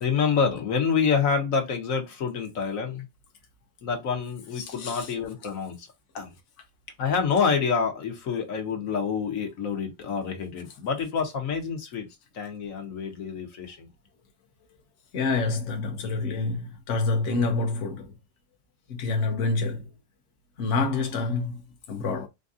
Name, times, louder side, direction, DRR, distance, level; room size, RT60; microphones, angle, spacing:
voice 1, 0.0-3.0 3.8-5.9 6.1-6.3 7.0-12.1 12.3-13.9, left 6 dB, 85° left, 1.5 m, -27 dB
voice 2, 4.6-5.1 15.1-18.1 18.9-19.9 20.6-22.3, left 3 dB, 65° left, 1.1 m, -27 dB
4.4 x 2.6 x 2.5 m
omnidirectional pair, 1.4 m